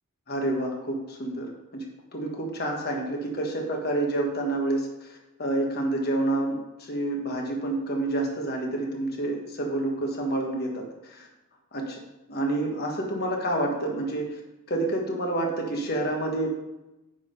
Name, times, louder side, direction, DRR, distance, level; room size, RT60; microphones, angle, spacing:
voice 1, 0.3-1.8 2.1-10.8 11.1-11.3 11.7-12.0 12.3-14.4 14.7-16.5, right 2 dB, 50° left, 0 dB, 1.5 m, -28 dB
9.1 x 3.8 x 5.7 m, 0.97 s
head